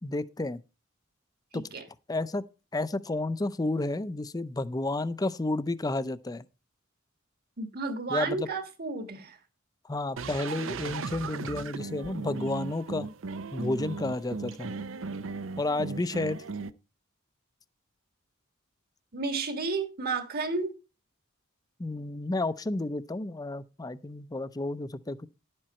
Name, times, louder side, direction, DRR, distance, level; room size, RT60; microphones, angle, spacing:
voice 1, 0.0-0.6 1.5-1.6 2.1-2.4 2.7-6.4 8.1-8.5 9.8-13.1 13.5-14.7 15.6-16.4 21.8-25.3, left 2 dB, 20° left, 0.5 m, -31 dB
voice 2, 1.5-1.8 7.6-9.4 19.1-20.7, right 4 dB, 50° right, 1.6 m, -32 dB
sound 1, 10.2-16.7, right 4 dB, 75° right, 0.6 m, -37 dB
11.0 x 7.6 x 4.3 m
head